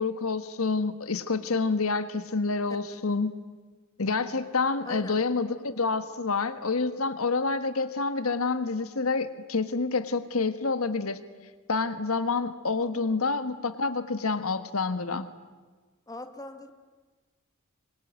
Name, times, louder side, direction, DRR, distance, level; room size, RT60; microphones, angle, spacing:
voice 1, 0.0-3.3 4.0-11.2 11.7-15.3, left 4 dB, 85° left, 11 dB, 1.4 m, -28 dB
voice 2, 4.8-5.2 12.8-12.9 16.1-16.7, left 2 dB, 15° left, 7 dB, 1.8 m, -41 dB
25.5 x 24.5 x 9.4 m, 1.4 s
head